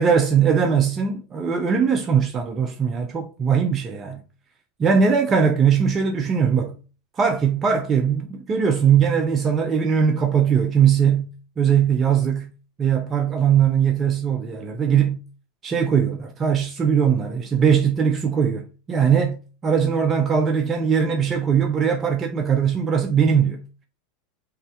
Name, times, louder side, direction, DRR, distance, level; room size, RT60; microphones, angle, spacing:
voice 1, 0.0-4.2 4.8-6.8 7.2-11.3 11.6-12.5 12.8-15.2 15.6-23.6, right 7 dB, 25° right, 0.4 m, -20 dB
3.3 x 2.1 x 2.8 m
supercardioid pair, 125°, 0 cm